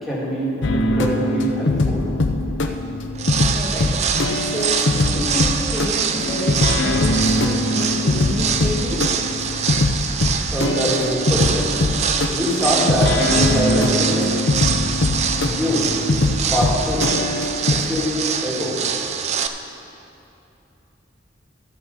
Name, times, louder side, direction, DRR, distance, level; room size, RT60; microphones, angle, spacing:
voice 1, 0.0-2.1 10.5-11.7 12.3-14.3 15.4-15.9 16.5-17.1 17.7-18.8, equal, ahead, -8 dB, 2.2 m, -23 dB
sound 1, 0.6-17.8, left 2 dB, 70° left, 0.7 m, -22 dB
sound 2, 3.1-19.5, right 7 dB, 35° right, 0.4 m, -24 dB
voice 2, 3.5-3.9 4.4-9.1, equal, 20° right, -9 dB, 1.6 m, -29 dB
13.0 x 5.7 x 6.7 m, 2.7 s
head